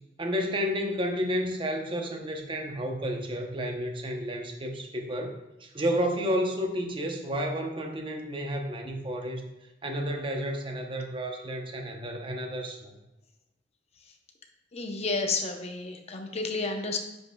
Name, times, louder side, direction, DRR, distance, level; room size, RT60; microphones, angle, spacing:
voice 1, 0.2-9.4 9.8-12.9, equal, 30° right, 3 dB, 0.8 m, -31 dB
voice 2, 14.7-17.0, left 3 dB, 35° left, 4 dB, 0.8 m, -31 dB
9.5 x 5.4 x 2.3 m, 0.98 s
head